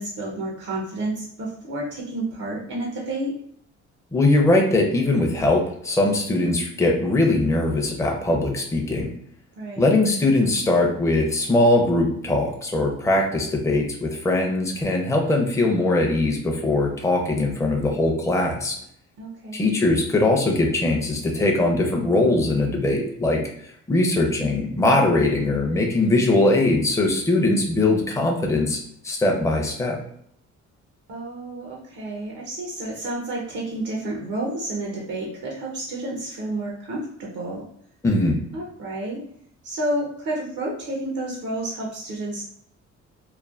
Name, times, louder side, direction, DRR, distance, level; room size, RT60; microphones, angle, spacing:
voice 1, 0.0-3.3 9.6-10.0 19.2-19.6 31.1-37.6 38.5-39.2 39.6-42.4, right 1 dB, 75° right, -3 dB, 0.8 m, -30 dB
voice 2, 4.1-9.1 9.8-18.8 19.5-23.4 23.9-28.8 29.0-30.0 38.0-38.4, left 2 dB, 10° left, 1 dB, 0.5 m, -21 dB
3.2 x 2.1 x 2.4 m, 0.68 s
cardioid pair, 90°, 30 cm